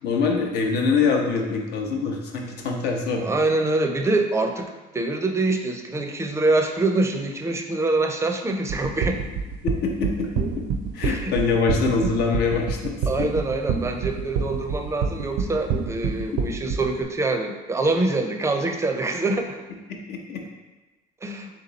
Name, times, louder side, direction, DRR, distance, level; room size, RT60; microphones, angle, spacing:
voice 1, 0.0-3.3 9.6-10.3 10.6-10.7 10.9-12.9 20.1-20.4, left 4 dB, 75° left, 1 dB, 0.8 m, -24 dB
voice 2, 3.2-9.2 11.0-11.3 13.1-19.6 21.2-21.5, right 2 dB, 15° right, 4 dB, 0.4 m, -25 dB
sound 1, 8.7-17.0, right 6 dB, 75° right, 0.5 m, -26 dB
3.6 x 2.9 x 3.9 m, 1.1 s
cardioid pair, 110°, 17 cm